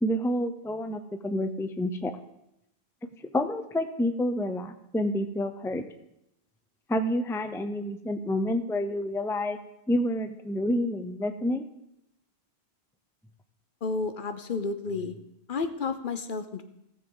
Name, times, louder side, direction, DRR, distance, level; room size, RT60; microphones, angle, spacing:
voice 1, 0.0-2.1 3.3-5.9 6.9-9.6 9.9-11.7, left 1 dB, 5° left, 8 dB, 0.5 m, -28 dB
voice 2, 13.8-15.2 15.5-16.6, left 4 dB, 55° left, 9 dB, 0.9 m, -31 dB
17.0 x 7.2 x 3.9 m, 0.82 s
omnidirectional pair, 1.1 m